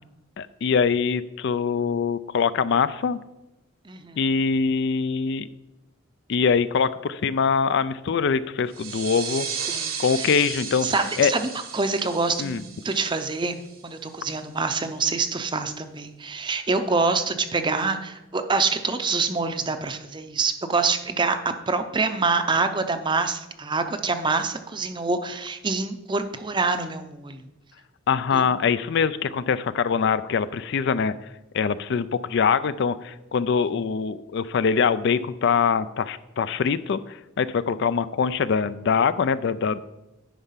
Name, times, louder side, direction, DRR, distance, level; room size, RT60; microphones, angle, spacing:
voice 1, 0.4-3.2 4.2-5.5 6.3-9.5 10.0-10.9 11.2-11.3 12.4-12.6 28.1-31.1 31.5-39.8, left 6 dB, 55° left, 15 dB, 0.4 m, -23 dB
voice 2, 3.9-4.2 9.7-10.3 10.8-13.6 13.8-21.4 21.7-27.4 28.3-28.5, right 4 dB, 20° right, 8 dB, 0.6 m, -26 dB
sound 1, 8.7-14.0, right 6 dB, 90° right, 1.4 m, -35 dB
10.0 x 4.5 x 5.7 m, 1.0 s
head